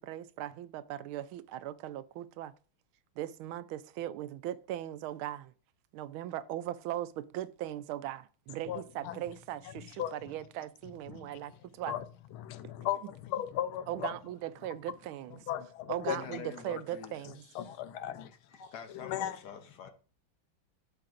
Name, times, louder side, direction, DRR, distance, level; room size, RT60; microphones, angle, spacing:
voice 1, 0.0-2.5 3.2-5.5 5.9-11.9 13.9-15.4 15.9-17.4, right 13 dB, 85° right, 1.4 m, -39 dB
voice 2, 8.7-9.2 9.6-9.7 10.0-10.1 11.1-11.4 11.9-12.0 12.3-14.1 15.5-16.2 17.5-18.3 19.0-19.4, left 11 dB, 85° left, 1.6 m, -36 dB
voice 3, 16.1-17.8 18.5-19.9, left 7 dB, 60° left, 1.4 m, -46 dB
11.5 x 6.7 x 2.5 m
omnidirectional pair, 2.2 m